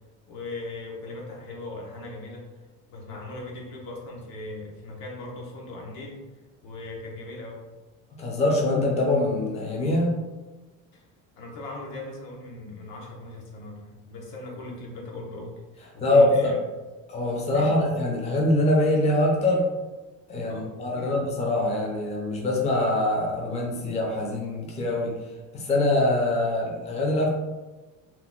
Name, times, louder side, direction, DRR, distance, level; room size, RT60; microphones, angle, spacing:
voice 1, 0.3-2.5 2.9-6.2 6.6-7.6 10.9-11.0 11.4-16.6 17.5-17.8 20.4-20.7 20.9-21.2, left 2 dB, 85° left, -1 dB, 1.0 m, -39 dB
voice 2, 8.2-10.1 16.0-16.5 17.1-19.6 20.3-25.2 25.5-27.3, left 1 dB, 20° left, -1 dB, 0.5 m, -23 dB
2.9 x 2.2 x 3.5 m, 1.2 s
cardioid pair, 155°, 35 cm